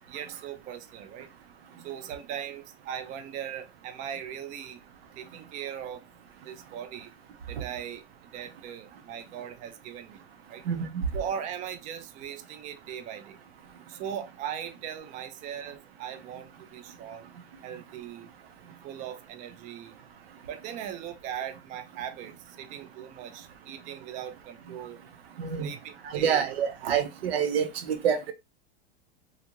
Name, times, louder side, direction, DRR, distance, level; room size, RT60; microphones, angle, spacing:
voice 1, 0.1-1.3 1.8-4.8 5.2-6.0 6.4-7.1 7.5-10.2 10.5-10.6 11.1-13.4 13.9-17.3 17.6-18.3 18.8-20.0 20.5-25.0 25.6-26.4 27.6-27.7, right 9 dB, 25° right, 0.4 m, -39 dB
voice 2, 10.7-11.1 25.4-25.7 26.0-28.3, right 7 dB, 85° right, 0.7 m, -27 dB
2.6 x 2.4 x 2.9 m
hypercardioid pair, 120°, 29 cm